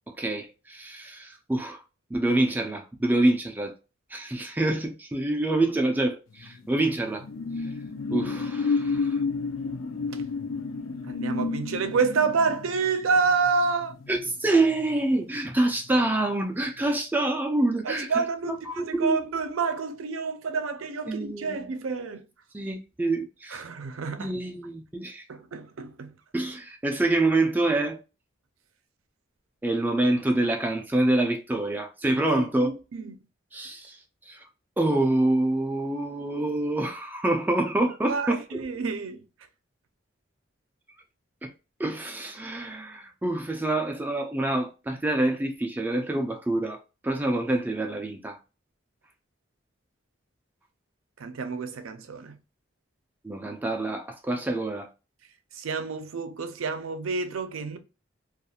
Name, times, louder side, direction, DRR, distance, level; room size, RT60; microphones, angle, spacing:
voice 1, 0.1-1.8 2.1-3.7 4.1-7.2 8.1-9.2 14.1-19.2 21.1-21.7 22.5-23.6 24.2-25.2 26.3-28.0 29.6-32.7 33.5-34.0 34.3-34.4 34.8-38.7 41.4-41.5 41.8-48.4 53.2-54.9, right 2 dB, 10° right, 0.3 m, -26 dB
sound 1, 6.4-15.4 15.7-16.0, left 4 dB, 80° left, 0.5 m, -31 dB
voice 2, 11.1-13.9 17.8-22.2 23.5-24.3 25.3-26.1 32.3-33.2 38.1-39.3 51.2-52.4 55.5-57.8, right 4 dB, 85° right, 0.5 m, -28 dB
2.4 x 2.4 x 2.7 m
head